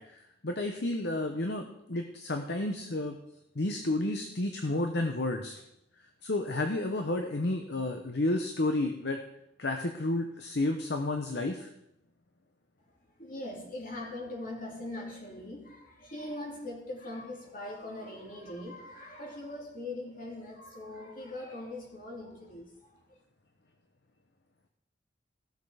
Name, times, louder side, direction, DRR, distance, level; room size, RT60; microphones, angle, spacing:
voice 1, 0.0-3.2 3.5-5.6 6.2-9.2 9.6-11.7, left 2 dB, 65° left, 5 dB, 0.9 m, -31 dB
voice 2, 13.2-22.7, left 1 dB, 50° left, -1 dB, 3.1 m, -41 dB
15.5 x 6.7 x 4.9 m, 0.80 s
head